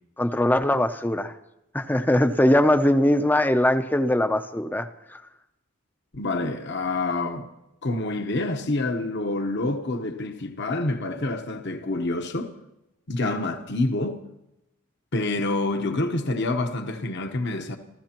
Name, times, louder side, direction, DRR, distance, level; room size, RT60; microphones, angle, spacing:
voice 1, 0.2-1.3 1.7-5.2, left 1 dB, 10° left, 0.6 m, -21 dB
voice 2, 6.1-7.5 7.8-12.5 13.1-14.2 15.1-17.8, left 2 dB, 55° left, 1.0 m, -27 dB
28.0 x 14.5 x 3.0 m
head